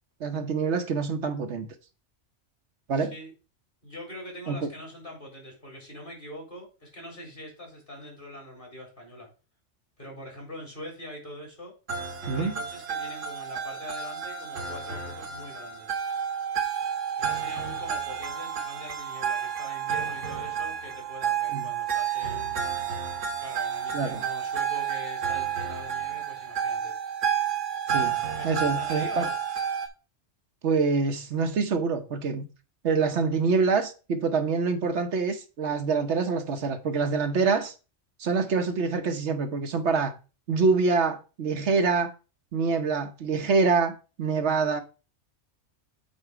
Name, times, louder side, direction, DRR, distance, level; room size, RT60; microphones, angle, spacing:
voice 1, 0.2-1.7 2.9-3.1 4.5-4.7 12.3-12.5 21.5-21.6 23.9-24.2 27.9-28.2 28.4-29.3 30.6-32.4 32.8-37.7 38.2-40.1 40.5-42.1 42.5-44.8, right 4 dB, 70° right, 1.1 m, -25 dB
voice 2, 2.9-3.3 3.8-9.3 10.0-11.7 12.3-16.0 17.2-22.7 23.4-26.9 28.4-29.3, left 1 dB, 45° left, 3.9 m, -43 dB
sound 1, 11.9-29.9, right 8 dB, 85° right, 1.7 m, -31 dB
8.1 x 4.3 x 4.8 m
omnidirectional pair, 1.2 m